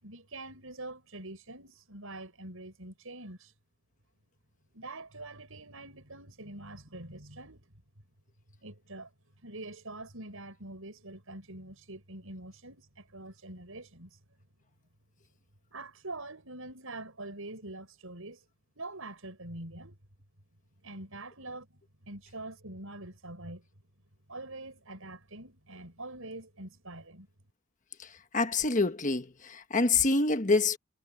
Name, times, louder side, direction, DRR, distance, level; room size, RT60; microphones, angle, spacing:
voice 1, 0.0-3.5 4.7-7.7 8.6-9.1 9.4-14.2 15.7-18.4 18.8-20.0 20.8-23.7 24.3-27.3, right 2 dB, 75° right, 5.7 m, -44 dB
voice 2, 28.3-30.8, left 3 dB, 35° left, 1.4 m, -26 dB
head